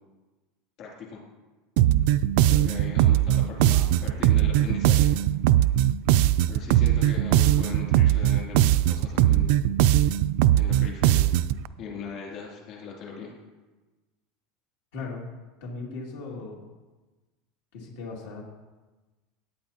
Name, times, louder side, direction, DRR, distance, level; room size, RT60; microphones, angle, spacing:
voice 1, 0.8-1.2 2.4-5.1 6.5-9.5 10.5-11.3 11.8-13.3, left 5 dB, 40° left, -3 dB, 2.7 m, -39 dB
sound 1, 1.8-11.6, right 13 dB, 60° right, 0.3 m, -20 dB
voice 2, 14.9-15.3 15.6-16.7 17.7-18.4, left 3 dB, 75° left, -2 dB, 2.5 m, -37 dB
17.0 x 9.3 x 2.9 m, 1.2 s
supercardioid pair, 165°, 0 cm